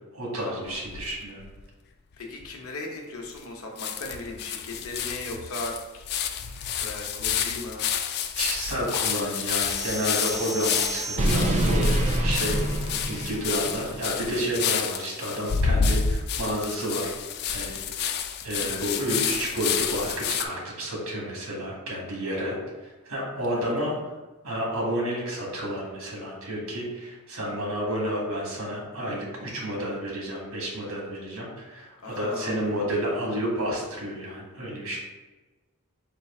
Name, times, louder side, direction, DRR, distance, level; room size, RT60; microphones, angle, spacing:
voice 1, 0.1-1.4 6.5-6.9 8.4-11.9 12.2-12.6 13.0-17.1 17.5-18.1 18.4-20.1 20.4-22.6 23.0-24.0 24.4-35.0, equal, 90° right, -2 dB, 1.5 m, -30 dB
sound 1, 0.7-1.6 2.1-2.2 2.4-2.5 3.4-3.5 3.8-20.4, left 7 dB, 50° left, 0.3 m, -29 dB
voice 2, 2.2-6.0 6.8-7.8 18.6-18.9 23.6-23.9 32.0-32.9, left 2 dB, 70° left, 0 dB, 0.8 m, -38 dB
sound 2, 9.6-13.9, right 1 dB, 30° right, 0.4 m, -27 dB
4.5 x 2.4 x 4.2 m, 1.2 s
head